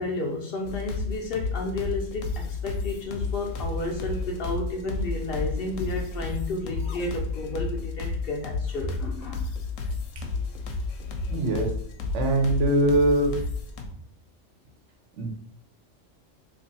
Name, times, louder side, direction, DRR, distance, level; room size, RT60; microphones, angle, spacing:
voice 1, 0.0-9.4, left 2 dB, 60° left, 0 dB, 0.7 m, -32 dB
sound 1, 0.6-13.9, left 3 dB, 80° left, 1.0 m, -32 dB
voice 2, 11.3-11.7 12.1-13.3 15.2-15.3, right 1 dB, 70° right, 2 dB, 1.0 m, -22 dB
2.8 x 2.5 x 4.0 m, 0.64 s
omnidirectional pair, 1.3 m